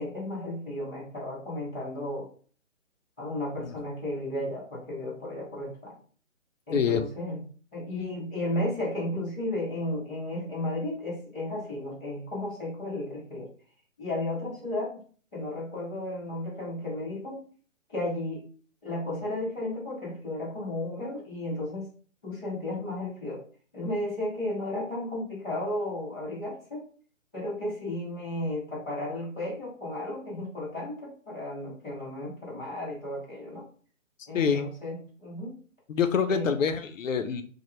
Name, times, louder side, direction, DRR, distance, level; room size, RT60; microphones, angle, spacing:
voice 1, 0.0-2.3 3.2-6.0 6.7-7.4 7.7-13.5 14.0-14.9 15.3-17.4 17.9-18.5 18.8-21.9 22.2-23.4 23.7-26.8 27.3-33.7 34.3-35.6 36.3-36.5, left 1 dB, 5° left, -16 dB, 0.7 m, -34 dB
voice 2, 6.7-7.0 34.3-34.7 35.9-37.4, left 6 dB, 75° left, 9 dB, 0.5 m, -26 dB
3.0 x 2.1 x 3.0 m, 0.43 s
hypercardioid pair, 175°, 39 cm